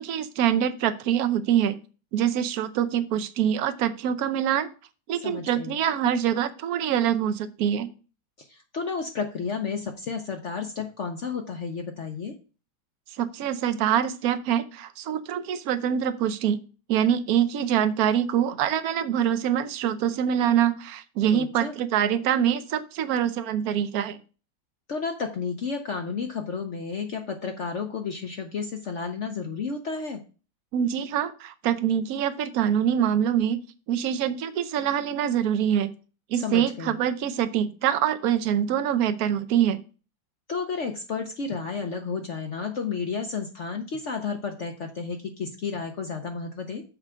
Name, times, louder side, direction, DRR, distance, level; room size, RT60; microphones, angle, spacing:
voice 1, 0.0-1.8 2.1-4.7 5.1-7.9 13.2-16.6 16.9-24.2 30.7-33.6 33.9-35.9 36.3-39.8, right 9 dB, 65° right, 10 dB, 1.1 m, -25 dB
voice 2, 5.2-5.7 8.4-12.3 21.3-21.7 24.9-30.2 36.4-36.9 40.5-46.8, left 5 dB, 55° left, 4 dB, 0.8 m, -32 dB
6.6 x 4.7 x 6.2 m, 0.35 s
omnidirectional pair, 2.0 m